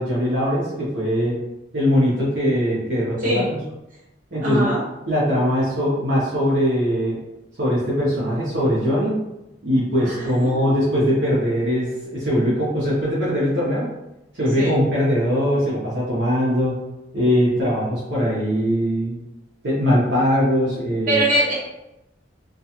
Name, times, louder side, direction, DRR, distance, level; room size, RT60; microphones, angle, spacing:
voice 1, 0.0-1.4 1.7-3.6 4.3-4.7 5.1-7.2 7.6-9.2 9.6-13.9 14.4-16.7 17.1-19.2 19.6-21.2, equal, 75° right, -8 dB, 0.7 m, -21 dB
voice 2, 4.4-4.8 10.0-10.7 14.6-14.7 21.1-21.5, right 1 dB, 45° right, -8 dB, 1.1 m, -22 dB
2.3 x 2.3 x 2.8 m, 0.93 s
head